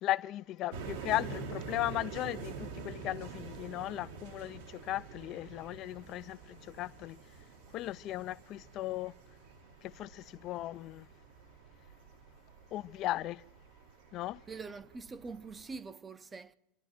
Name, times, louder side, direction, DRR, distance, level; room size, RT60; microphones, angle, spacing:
voice 1, 0.0-7.2 7.7-9.1 9.8-11.1 12.7-13.4 14.1-14.4, left 15 dB, 40° left, 0.5 m, -37 dB
sound 1, 0.7-15.8, right 5 dB, 75° right, 2.0 m, -47 dB
voice 2, 14.5-16.5, right 4 dB, 15° right, 0.7 m, -44 dB
28.0 x 11.5 x 4.4 m
supercardioid pair, 150°, 0 cm